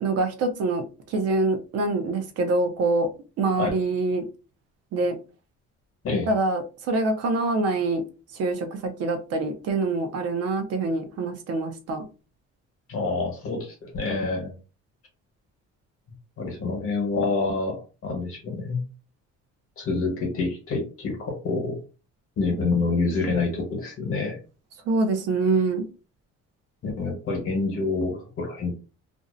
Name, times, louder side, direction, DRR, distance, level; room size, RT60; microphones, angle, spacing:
voice 1, 0.0-3.1 3.4-4.3 4.9-5.2 6.3-8.0 8.3-12.0 24.9-25.9, right 3 dB, 55° right, 7 dB, 0.5 m, -25 dB
voice 2, 12.9-14.5 16.4-18.8 19.8-21.8 22.4-24.4 26.8-28.7, left 3 dB, 50° left, 1 dB, 1.1 m, -27 dB
2.5 x 2.0 x 2.5 m, 0.33 s
cardioid pair, 155°, 30 cm